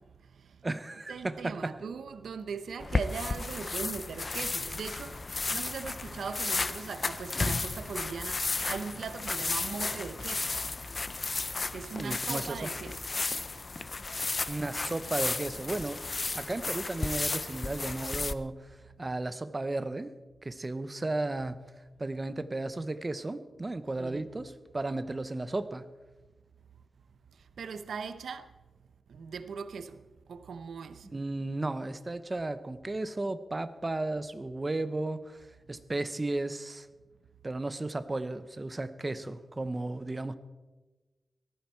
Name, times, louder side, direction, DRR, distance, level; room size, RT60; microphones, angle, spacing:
voice 1, 0.0-0.7 1.1-11.1 11.6-13.0 13.8-14.5 24.0-24.3 27.3-28.5 29.1-31.1, right 5 dB, 80° right, 0.7 m, -40 dB
voice 2, 0.6-1.8 12.0-12.7 14.5-16.0 16.3-20.1 20.4-21.6 22.0-25.8 31.1-36.9 37.4-40.3, right 2 dB, 20° right, 0.8 m, -34 dB
sound 1, 2.8-18.3, left 3 dB, 30° left, 0.5 m, -33 dB
18.5 x 14.0 x 4.4 m
wide cardioid pair, 140°, 0 cm